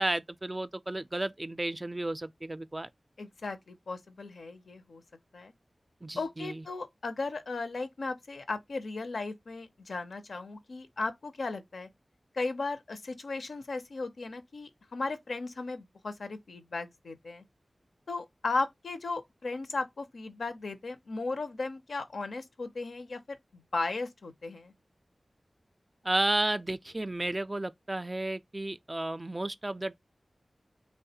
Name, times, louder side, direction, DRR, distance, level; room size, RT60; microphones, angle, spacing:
voice 1, 0.0-2.9 6.0-6.6 26.0-30.0, right 2 dB, 30° right, 0.3 m, -32 dB
voice 2, 3.2-5.0 5.3-5.5 6.2-11.9 12.3-17.4 18.1-24.7, left 3 dB, 85° left, 0.5 m, -36 dB
3.2 x 2.1 x 2.7 m
cardioid pair, 45°, 0 cm